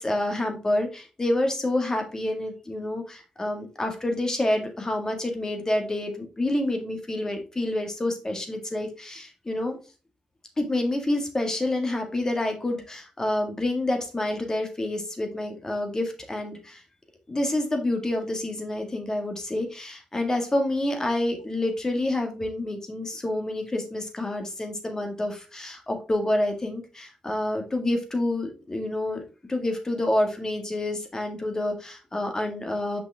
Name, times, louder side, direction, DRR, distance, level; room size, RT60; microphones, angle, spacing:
voice 1, 0.0-9.8 10.6-16.8 17.3-29.2 29.5-33.0, left 1 dB, 25° left, 4 dB, 1.8 m, -28 dB
5.9 x 5.7 x 3.5 m, 0.33 s
cardioid pair, 80°, 2 cm